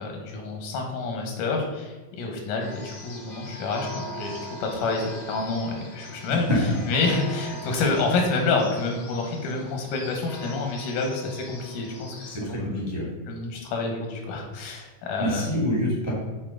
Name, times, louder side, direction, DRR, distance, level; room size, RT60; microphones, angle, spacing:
voice 1, 0.0-12.8 13.3-15.4, left 3 dB, 90° left, 2 dB, 2.7 m, -28 dB
sound 1, 2.6-12.4, equal, 55° left, 1.1 m, -41 dB
voice 2, 12.3-13.1 15.2-16.1, equal, 10° right, -4 dB, 1.1 m, -27 dB
7.3 x 4.6 x 3.8 m, 1.2 s
omnidirectional pair, 3.6 m